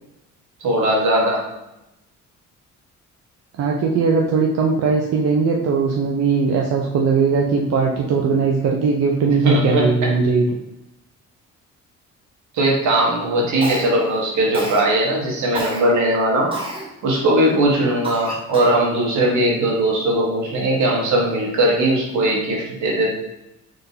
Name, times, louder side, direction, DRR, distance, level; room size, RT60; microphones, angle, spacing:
voice 1, 0.6-1.5 9.3-9.9 12.5-16.5 17.0-23.1, right 1 dB, 75° right, -2 dB, 1.4 m, -19 dB
voice 2, 3.6-10.4, right 4 dB, 55° right, -1 dB, 0.6 m, -19 dB
Cough, 13.6-14.1 14.5-14.9 15.5-15.8 16.5-16.9 17.4-17.5 18.0-18.8, right 2 dB, 20° right, 1.1 m, -29 dB
3.7 x 3.7 x 2.7 m, 0.89 s
cardioid pair, 90°, 30 cm